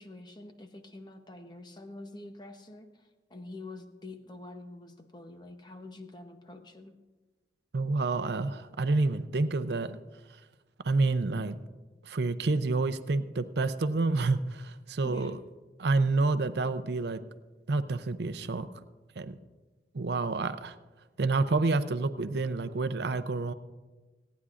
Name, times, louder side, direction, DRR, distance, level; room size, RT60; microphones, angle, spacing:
voice 1, 0.0-6.9 15.0-15.3, left 2 dB, 25° left, 6 dB, 0.8 m, -46 dB
voice 2, 7.7-10.0 10.8-11.6 12.0-15.4 15.8-17.2 17.7-18.7 19.2-19.4 19.9-20.8 21.2-23.5, right 3 dB, 70° right, 11 dB, 0.6 m, -28 dB
25.5 x 9.5 x 2.5 m, 1.3 s
head